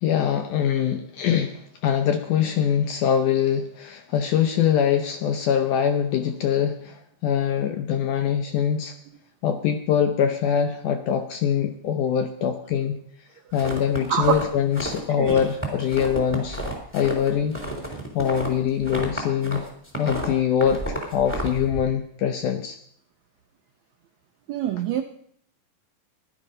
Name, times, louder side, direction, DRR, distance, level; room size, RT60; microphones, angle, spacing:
voice 1, 0.0-8.9 9.4-13.0 13.5-16.6 16.9-17.6 17.9-19.6 20.0-22.8, left 8 dB, 70° left, 6 dB, 2.1 m, -23 dB
sound 1, 13.5-15.0 15.3-19.6 19.9-21.8, right 1 dB, 5° left, 2.9 m, -31 dB
voice 2, 14.1-14.4 15.2-15.4 24.5-25.0, right 10 dB, 90° right, 6 dB, 1.5 m, -24 dB
15.5 x 11.0 x 5.3 m, 0.65 s
omnidirectional pair, 4.1 m